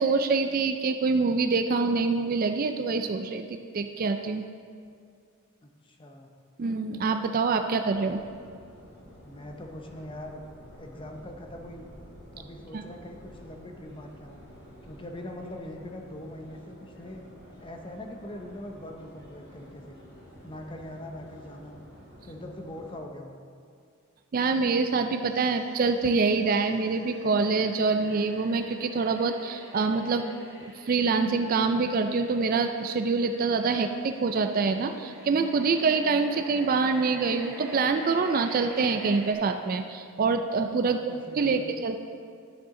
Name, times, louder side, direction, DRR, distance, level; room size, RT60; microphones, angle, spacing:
voice 1, 0.0-4.4 6.6-8.2 12.7-12.8 24.3-30.3 30.6-42.0, right 4 dB, 40° right, 7 dB, 0.3 m, -25 dB
voice 2, 5.6-6.3 9.2-10.4 10.8-11.9 12.3-14.4 14.8-17.3 17.6-20.0 20.4-21.8 22.2-23.4 40.8-41.7, left 1 dB, 20° left, 3 dB, 0.7 m, -42 dB
Subway metro underground, 7.9-22.9, equal, 50° left, 1.9 m, -50 dB
sound 1, 25.3-39.3, equal, 5° right, 2.4 m, -46 dB
12.5 x 6.9 x 3.7 m, 2.2 s
head